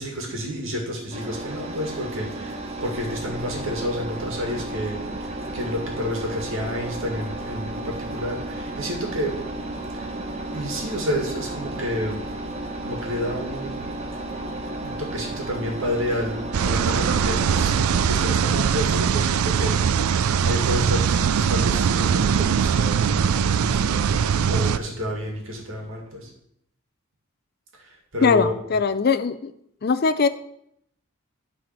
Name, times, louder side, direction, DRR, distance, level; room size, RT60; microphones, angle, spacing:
voice 1, 0.0-9.4 9.9-10.2 10.5-12.2 12.8-14.0 14.8-17.7 18.1-26.3 27.7-28.5, equal, 70° right, 0 dB, 2.2 m, -30 dB
Engine, 1.1-18.0, right 1 dB, 30° right, 1.0 m, -33 dB
sound 1, 16.5-24.8, right 7 dB, 90° right, 0.4 m, -21 dB
voice 2, 28.2-29.5 29.8-30.3, left 5 dB, 45° left, 12 dB, 0.4 m, -20 dB
11.0 x 4.2 x 5.8 m, 0.74 s
head